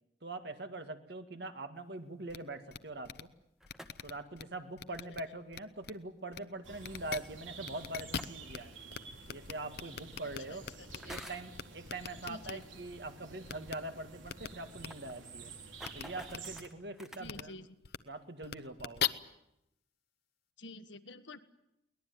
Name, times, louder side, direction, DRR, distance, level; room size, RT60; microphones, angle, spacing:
voice 1, 0.2-3.3 4.0-8.7 9.3-10.6 11.0-15.5 15.9-17.5 18.1-19.1, right 2 dB, 60° right, 8 dB, 1.9 m, -43 dB
sound 1, 2.3-2.4 2.7-2.8 3.0-3.2 3.7-4.4 4.8-5.2 5.5-5.9 6.3-6.4 6.8-7.2 7.6-8.6 8.9-9.0 9.2-11.2 11.5-12.5 13.5-13.7 14.3-14.5 14.8-14.9 15.8-16.0 16.3-16.4 17.2-17.4 17.8-18.0 18.4-19.1, left 8 dB, 55° left, 0.9 m, -39 dB
sound 2, 3.4-4.2 5.9-6.0 8.0-8.6 9.7-9.8 10.8-11.5 12.6-12.8 13.1-13.2 13.5-13.6 13.8-13.9 14.5-17.3, equal, 5° right, 1.4 m, -50 dB
sound 3, 6.6-16.6, right 4 dB, 85° right, 3.6 m, -51 dB
voice 2, 10.5-11.2 12.2-12.8 17.2-17.7 20.6-21.4, left 2 dB, 75° left, 10 dB, 1.5 m, -49 dB
22.5 x 19.5 x 9.4 m, 0.84 s
head